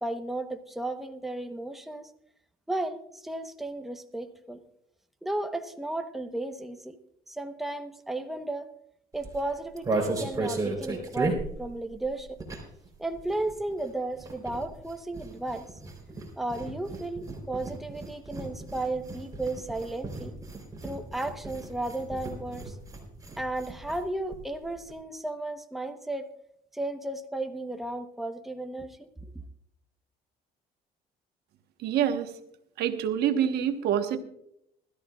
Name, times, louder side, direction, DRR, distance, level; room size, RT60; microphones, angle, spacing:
voice 1, 0.0-2.1 2.7-4.6 5.2-7.0 7.3-8.7 9.1-12.4 13.0-15.6 16.4-20.3 20.8-22.7 23.4-26.3 26.7-29.1, right 2 dB, ahead, 6 dB, 1.0 m, -34 dB
sound 1, 9.1-12.9 13.1-24.0 24.3-24.4 24.6-24.9, right 2 dB, 20° right, 3.8 m, -35 dB
voice 2, 31.8-32.3 32.8-34.2, right 9 dB, 75° right, 7 dB, 1.2 m, -26 dB
20.5 x 13.5 x 2.4 m, 0.74 s
cardioid pair, 110°, 17 cm